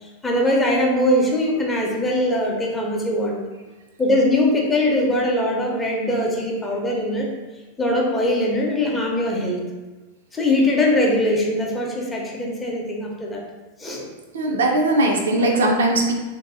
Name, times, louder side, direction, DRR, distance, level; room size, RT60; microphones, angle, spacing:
voice 1, 0.0-3.4 4.0-7.3 7.8-9.6 10.3-13.4 13.8-14.0, left 1 dB, 15° left, -2 dB, 0.6 m, -21 dB
voice 2, 14.3-16.1, right 2 dB, 65° right, 1 dB, 0.4 m, -19 dB
3.2 x 2.6 x 2.5 m, 1.2 s
figure-of-eight pair, 90°, 0 cm